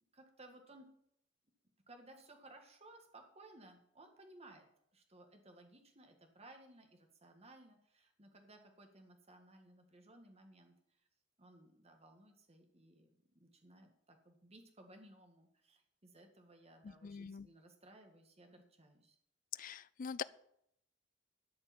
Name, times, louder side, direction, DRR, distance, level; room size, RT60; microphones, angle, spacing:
voice 1, 0.1-0.9 1.9-10.7 11.4-13.1 13.3-19.2, right 2 dB, 35° right, 4 dB, 1.9 m, -60 dB
voice 2, 16.8-17.5 19.6-20.2, left 6 dB, 45° left, 18 dB, 0.4 m, -44 dB
13.0 x 5.3 x 8.7 m, 0.73 s
head